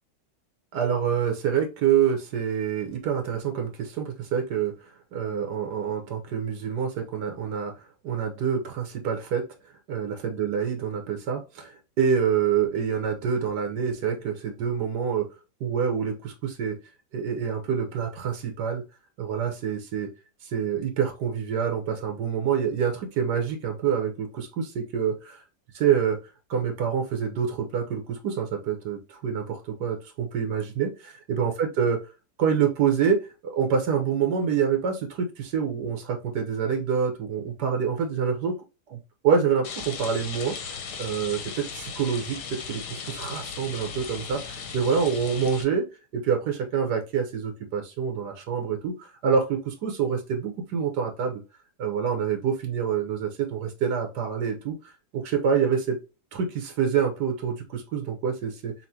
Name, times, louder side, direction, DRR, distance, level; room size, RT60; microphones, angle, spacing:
voice 1, 0.7-4.7 5.1-7.7 8.0-9.4 9.9-15.3 15.6-16.8 17.1-18.8 19.2-20.1 20.4-25.4 25.7-26.2 26.5-32.0 32.4-38.5 39.2-45.8 46.1-51.4 51.8-56.0 56.3-58.7, right 7 dB, 85° right, 4 dB, 1.6 m, -26 dB
Rain, 39.6-45.6, left 6 dB, 90° left, 1.5 m, -37 dB
5.7 x 2.6 x 2.8 m, 0.29 s
omnidirectional pair, 1.7 m